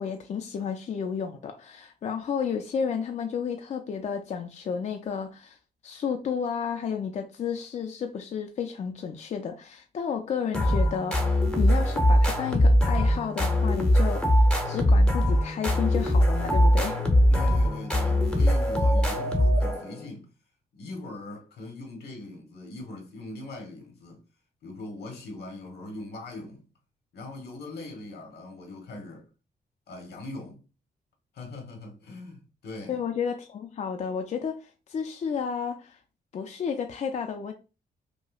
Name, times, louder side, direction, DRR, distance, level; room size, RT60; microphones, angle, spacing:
voice 1, 0.0-5.6 5.8-17.0 32.9-36.0 36.3-37.5, left 7 dB, 45° left, 0.4 m, -32 dB
sound 1, 10.5-20.1, equal, 5° left, 0.8 m, -22 dB
voice 2, 17.3-20.3 20.7-24.2 24.6-26.6 27.1-29.2 29.9-30.6 31.3-33.0, left 2 dB, 85° left, 1.2 m, -41 dB
5.4 x 2.1 x 2.4 m
wide cardioid pair, 140°, 17 cm